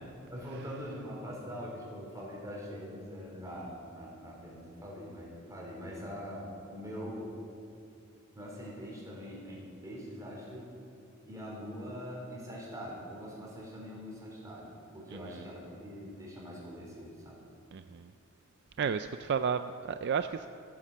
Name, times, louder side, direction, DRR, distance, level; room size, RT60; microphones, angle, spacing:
voice 1, 0.3-7.3 8.3-10.7 11.3-17.4, equal, 15° right, -3 dB, 4.0 m, -43 dB
voice 2, 15.1-15.5 17.7-18.1 18.8-20.5, right 6 dB, 55° right, 10 dB, 0.4 m, -33 dB
15.0 x 10.0 x 7.4 m, 2.5 s
head